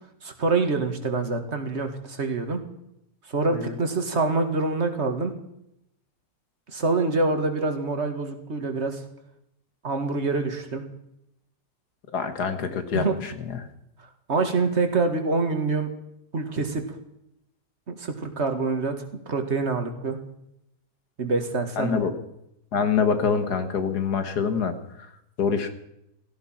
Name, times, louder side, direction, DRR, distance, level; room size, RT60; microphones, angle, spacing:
voice 1, 0.2-2.6 3.3-5.3 6.7-9.0 9.8-10.8 12.9-13.1 14.3-15.9 16.3-16.8 17.9-20.2 21.2-22.1, right 3 dB, 40° right, 5 dB, 2.1 m, -26 dB
voice 2, 12.1-13.7 21.8-22.1 22.7-24.7 25.4-25.7, left 6 dB, 65° left, 9 dB, 1.9 m, -25 dB
17.0 x 14.5 x 5.8 m, 0.81 s
omnidirectional pair, 1.9 m